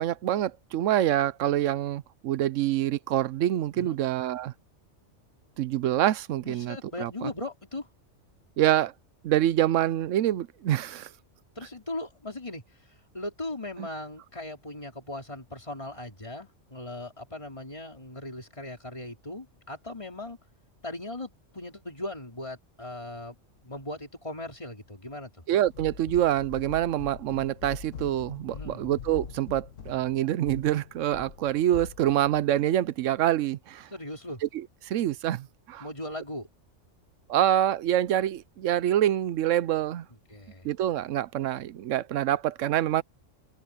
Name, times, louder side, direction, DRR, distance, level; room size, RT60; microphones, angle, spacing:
voice 1, 0.0-4.5 5.6-7.3 8.6-8.9 9.2-11.1 13.8-13.9 25.5-33.9 34.5-35.9 37.3-40.1 40.6-43.0, right 12 dB, 80° right, 1.0 m, -26 dB
voice 2, 6.4-7.9 11.6-12.6 13.1-20.4 20.8-23.4 23.6-25.3 28.5-28.8 33.9-34.4 35.8-36.5 40.3-40.7, left 1 dB, 25° left, 4.3 m, -38 dB
sound 1, 25.7-32.9, left 7 dB, 80° left, 1.5 m, -43 dB
open air
omnidirectional pair, 1.3 m